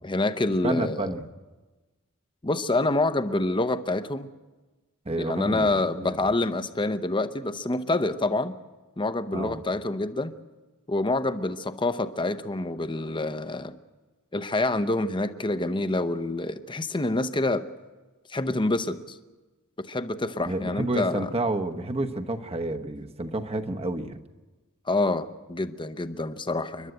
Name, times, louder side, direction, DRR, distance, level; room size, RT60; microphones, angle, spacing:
voice 1, 0.0-1.1 2.4-4.3 5.2-8.6 9.0-10.3 10.9-13.7 14.3-17.7 18.3-19.2 19.8-21.3 24.9-26.9, left 2 dB, 20° left, 11 dB, 0.8 m, -27 dB
voice 2, 0.6-1.3 5.0-6.3 9.3-9.6 20.4-24.2, right 2 dB, 30° right, 7 dB, 1.0 m, -30 dB
29.5 x 12.0 x 7.9 m, 1.2 s
head